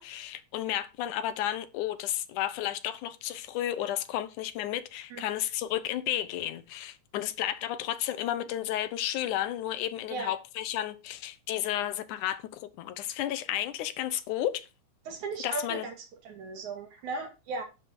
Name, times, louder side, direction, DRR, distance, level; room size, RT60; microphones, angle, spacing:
voice 1, 0.0-14.7 15.4-15.9, left 12 dB, 80° left, 2.4 m, -32 dB
voice 2, 15.1-15.9 16.2-17.6, right 4 dB, 70° right, 3.8 m, -36 dB
11.0 x 5.4 x 6.2 m
omnidirectional pair, 3.5 m